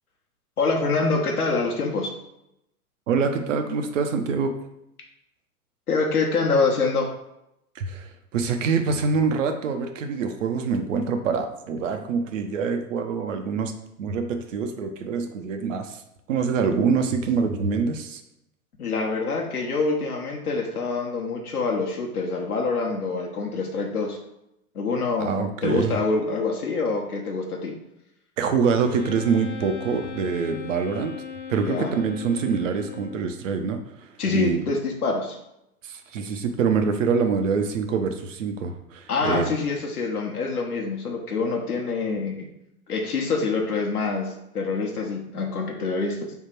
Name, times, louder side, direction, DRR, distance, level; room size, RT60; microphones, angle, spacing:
voice 1, 0.6-2.1 5.9-7.1 18.8-24.2 24.7-27.7 31.6-31.9 34.2-35.4 39.1-42.5 42.9-46.3, left 4 dB, 75° left, 0 dB, 0.9 m, -25 dB
voice 2, 3.1-4.5 7.8-13.7 14.0-16.0 16.3-18.2 25.2-26.0 28.4-31.1 31.5-33.8 34.3-34.6 35.8-39.5, right 5 dB, 55° right, 6 dB, 0.6 m, -25 dB
Wind instrument woodwind instrument, 28.8-33.4, left 7 dB, 30° left, 0.6 m, -38 dB
3.6 x 2.4 x 4.4 m, 0.82 s
figure-of-eight pair, 105°, 45 cm